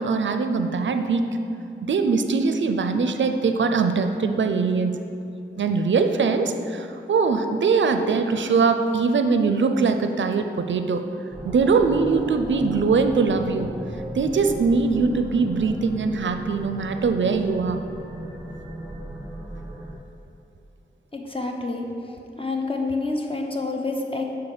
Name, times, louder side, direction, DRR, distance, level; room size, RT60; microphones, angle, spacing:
voice 1, 0.0-1.4 1.8-4.9 5.6-11.0 11.4-13.7 14.1-17.8, right 4 dB, 75° right, 7 dB, 0.4 m, -22 dB
sound 1, 11.3-19.9, right 1 dB, 20° right, 1.2 m, -36 dB
voice 2, 21.1-22.1 22.4-24.3, left 3 dB, 30° left, 1 dB, 0.9 m, -28 dB
7.0 x 4.5 x 4.9 m, 2.7 s
wide cardioid pair, 65°, 19 cm